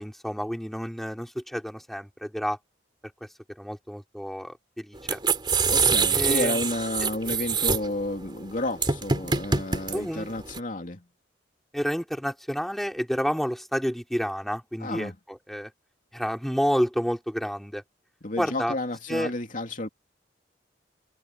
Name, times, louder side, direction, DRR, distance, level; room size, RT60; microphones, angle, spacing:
voice 1, 0.0-2.6 3.6-5.2 6.1-6.6 9.9-10.3 11.7-15.7 16.1-17.8 18.4-18.7 19.1-19.3, equal, ahead, 4.4 m, -29 dB
sound 1, 5.0-10.6, right 5 dB, 25° right, 2.9 m, -25 dB
voice 2, 5.7-11.0 14.8-15.1 18.2-19.9, left 2 dB, 50° left, 3.0 m, -31 dB
head